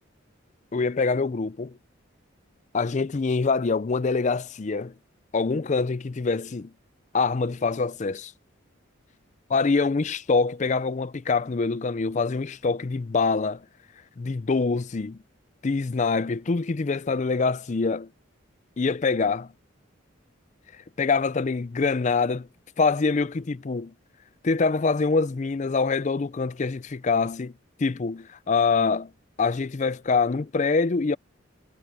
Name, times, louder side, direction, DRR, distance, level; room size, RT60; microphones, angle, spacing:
voice 1, 0.7-1.7 2.7-4.9 5.3-6.7 7.1-8.3 9.5-13.6 14.2-15.2 15.6-18.1 18.8-19.5 21.0-22.5 22.8-23.9 24.4-27.5 27.8-29.1 29.4-31.2, left 4 dB, 35° left, 0.4 m, -25 dB
head